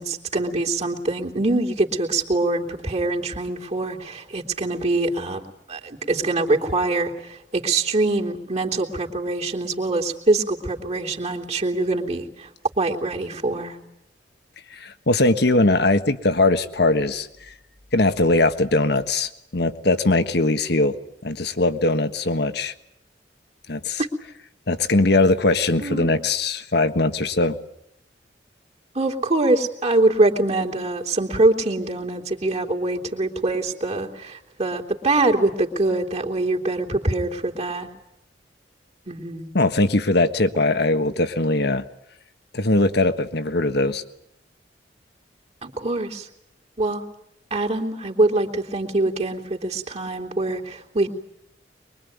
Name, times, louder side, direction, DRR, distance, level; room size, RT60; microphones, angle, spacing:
voice 1, 0.0-5.4 5.7-12.5 12.8-13.8 25.8-26.2 28.9-37.9 39.1-39.5 40.5-40.6 45.6-46.3 46.8-47.0 47.5-51.1, right 2 dB, 40° right, 1 dB, 3.4 m, -24 dB
voice 2, 14.7-17.3 17.9-21.0 21.2-22.7 23.7-24.0 24.7-27.6 39.5-41.8 42.5-44.0, left 2 dB, 65° left, 10 dB, 1.5 m, -20 dB
23.5 x 23.0 x 9.5 m, 0.77 s
head